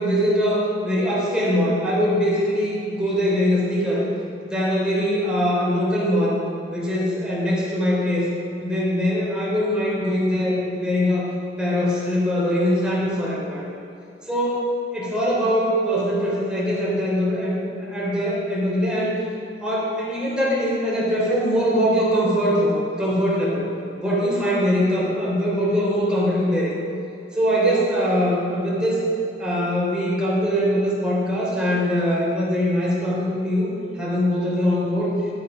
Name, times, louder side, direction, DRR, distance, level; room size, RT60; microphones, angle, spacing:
voice 1, 0.0-4.0 4.4-6.4 6.7-8.3 8.6-11.3 11.6-13.6 14.3-19.2 19.6-23.6 24.0-26.7 27.3-29.0 29.4-35.1, equal, 5° right, -7 dB, 3.2 m, -22 dB
13.5 x 8.9 x 5.1 m, 2.7 s
head